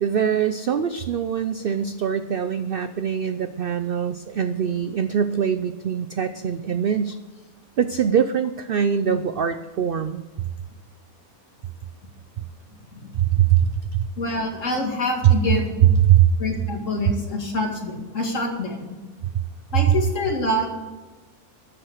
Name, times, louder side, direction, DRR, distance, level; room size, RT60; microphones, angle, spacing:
voice 1, 0.0-7.2 7.8-10.2 13.1-14.1 15.2-15.3 15.8-16.3 19.9-20.0, right 9 dB, 65° right, 11 dB, 0.5 m, -22 dB
voice 2, 14.2-15.7 16.4-19.0 19.7-20.7, left 2 dB, 55° left, 2 dB, 2.4 m, -26 dB
12.5 x 7.9 x 6.4 m, 1.3 s
omnidirectional pair, 1.5 m